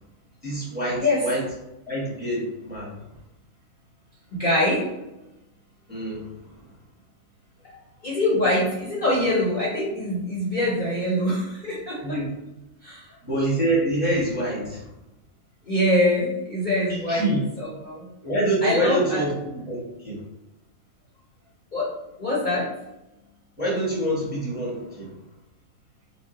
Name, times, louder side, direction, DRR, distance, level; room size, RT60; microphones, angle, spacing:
voice 1, 0.4-1.5 1.9-3.0 5.9-6.3 12.0-12.3 13.3-14.9 16.9-17.4 18.2-19.4 19.7-20.2 23.6-25.1, right 1 dB, 10° right, -6 dB, 1.0 m, -26 dB
voice 2, 4.3-4.9 8.0-12.2 12.8-13.0 15.7-17.2 17.6-18.1 18.6-19.2 21.7-21.9 22.2-22.7, left 1 dB, 45° left, -7 dB, 0.7 m, -24 dB
3.0 x 2.1 x 3.7 m, 0.92 s
omnidirectional pair, 1.4 m